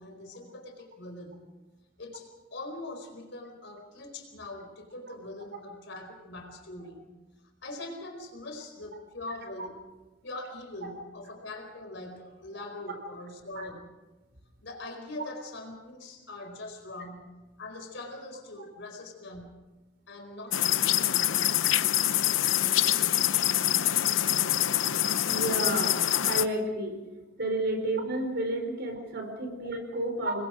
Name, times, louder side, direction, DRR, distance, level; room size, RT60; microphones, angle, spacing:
voice 1, 0.0-1.5 2.0-7.1 7.6-9.8 10.2-13.9 14.6-17.3 17.6-19.6 20.1-21.5 30.1-30.5, left 2 dB, 65° left, 4 dB, 4.7 m, -42 dB
voice 2, 9.3-9.7 10.8-10.9 12.5-12.6 13.5-13.7 25.3-26.0 26.3-27.0 27.4-30.5, right 1 dB, 60° right, 5 dB, 4.5 m, -31 dB
sound 1, 20.5-26.5, left 12 dB, 90° left, 0.8 m, -25 dB
27.0 x 21.5 x 5.0 m, 1.1 s
head